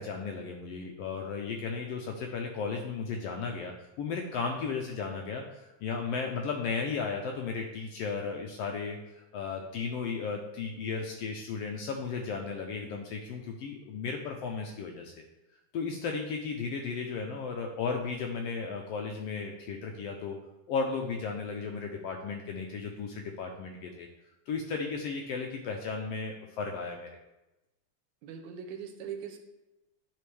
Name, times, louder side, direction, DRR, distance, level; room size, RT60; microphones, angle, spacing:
voice 1, 0.0-15.1 15.7-20.4 20.7-24.1 24.5-27.1, left 5 dB, 75° left, 2 dB, 1.5 m, -35 dB
voice 2, 28.2-29.4, right 7 dB, 90° right, 5 dB, 2.1 m, -40 dB
10.0 x 4.3 x 3.2 m, 0.99 s
omnidirectional pair, 3.3 m